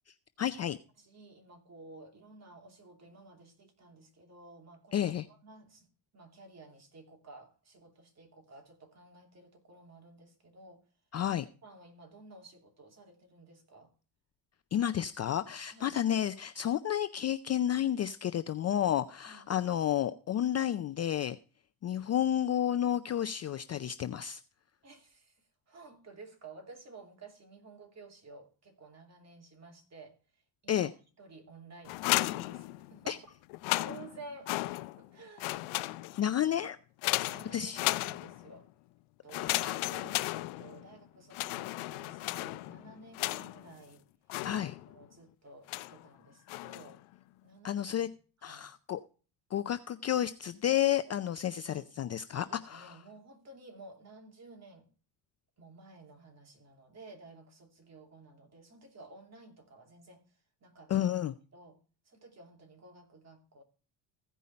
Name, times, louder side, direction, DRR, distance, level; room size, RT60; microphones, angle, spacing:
voice 1, 0.4-0.8 4.9-5.3 11.1-11.5 14.7-21.4 21.8-24.4 30.7-30.9 33.1-33.2 36.2-36.8 37.5-37.8 39.5-39.7 44.4-44.8 47.6-48.1 48.4-49.0 49.5-52.9 60.9-61.3, left 10 dB, 35° left, 0.5 m, -31 dB
voice 2, 1.0-5.9 6.1-10.8 11.6-13.9 15.7-16.0 19.2-19.5 24.8-30.9 31.2-33.2 33.7-35.7 36.3-36.7 37.3-38.7 39.2-44.0 44.9-47.0 47.4-48.1 48.4-48.7 51.6-51.9 52.3-54.9 55.6-61.1 61.5-61.8 62.0-63.6, right 2 dB, 30° right, 3.0 m, -53 dB
sound 1, 31.9-33.1 33.5-35.1 35.4-36.4 37.0-38.6 39.3-40.9 41.3-43.7 44.3-45.0 45.7-46.1 46.5-47.0, left 20 dB, 75° left, 0.7 m, -35 dB
15.5 x 5.4 x 4.2 m
cardioid pair, 100°, 49 cm